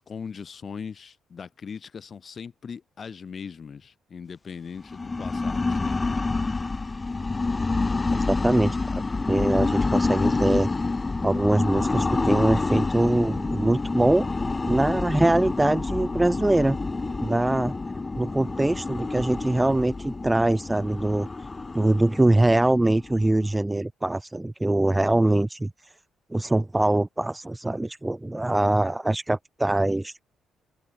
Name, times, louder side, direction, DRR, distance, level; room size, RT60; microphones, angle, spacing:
voice 1, 0.0-6.4, left 6 dB, 45° left, 5.6 m, -40 dB
sound 1, 4.8-23.6, left 3 dB, 25° left, 2.1 m, -28 dB
voice 2, 8.3-9.0 9.3-10.7 11.2-14.3 14.7-16.8 17.2-17.7 18.2-21.3 21.7-25.7 26.3-30.1, right 2 dB, 10° right, 1.7 m, -23 dB
cardioid pair, 90°, 0 cm